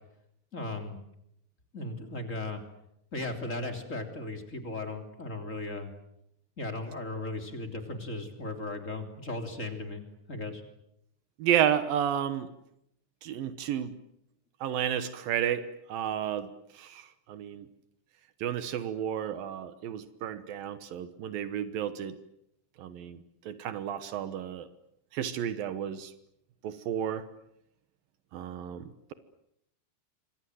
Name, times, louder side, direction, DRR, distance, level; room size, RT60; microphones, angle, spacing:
voice 1, 0.5-1.0 1.7-2.6 3.1-5.9 6.6-10.6, left 2 dB, 20° left, 6 dB, 3.2 m, -36 dB
voice 2, 11.4-12.5 13.2-13.9 14.6-16.5 16.8-17.0 17.3-17.7 18.4-22.2 22.8-23.2 23.5-24.6 25.1-26.1 26.6-27.3 28.3-29.1, right 9 dB, 80° right, 12 dB, 3.0 m, -31 dB
27.5 x 25.0 x 7.9 m, 0.78 s
omnidirectional pair, 4.1 m